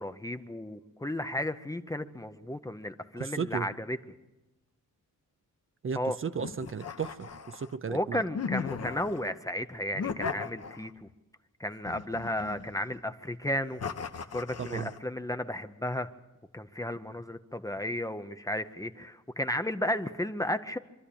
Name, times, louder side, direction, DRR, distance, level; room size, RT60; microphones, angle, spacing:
voice 1, 0.0-4.0 6.0-6.2 7.9-11.1 11.6-13.8 14.3-16.1 16.5-20.8, left 1 dB, 10° left, 9 dB, 0.7 m, -33 dB
voice 2, 3.2-3.7 5.8-8.2 14.6-14.9, right 6 dB, 40° right, 11 dB, 0.7 m, -35 dB
sound 1, 6.4-7.8 8.3-9.3 9.9-11.1 11.8-12.9 13.8-15.0, left 5 dB, 50° left, 1.1 m, -37 dB
25.0 x 13.0 x 8.6 m, 1.1 s
wide cardioid pair, 155°, 32 cm